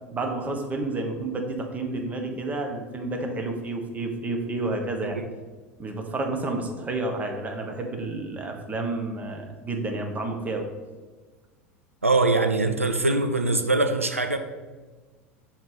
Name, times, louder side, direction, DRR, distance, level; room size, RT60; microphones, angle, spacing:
voice 1, 0.1-5.2 5.8-10.7, right 2 dB, 20° right, 1.1 m, -30 dB
voice 2, 12.0-14.4, right 2 dB, 85° right, 0.4 m, -23 dB
5.6 x 4.5 x 5.0 m
figure-of-eight pair, 80°, 7 cm